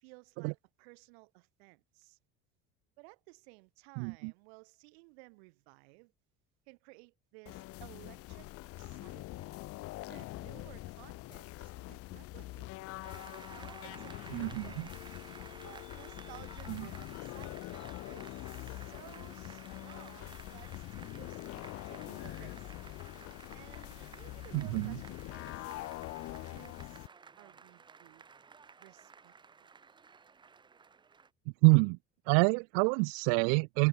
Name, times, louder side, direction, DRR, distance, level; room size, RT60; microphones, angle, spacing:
voice 1, 0.0-2.2 3.0-6.1 6.7-9.6 10.1-12.7 13.5-14.9 15.5-22.7 23.5-25.8 26.3-27.1 27.4-28.2 28.8-29.3 29.6-29.7, right 30 dB, 90° right, 2.8 m, -57 dB
voice 2, 4.0-4.3 14.3-14.9 24.5-24.9 31.6-32.0 32.3-33.9, right 40 dB or more, 70° right, 0.4 m, -26 dB
sound 1, 7.5-27.1, left 18 dB, 45° left, 1.5 m, -44 dB
Applause, 13.0-31.3, right 5 dB, 15° right, 1.3 m, -54 dB
sound 2, 14.9-18.0 21.7-22.6, left 31 dB, 85° left, 3.5 m, -54 dB
cardioid pair, 165°, 31 cm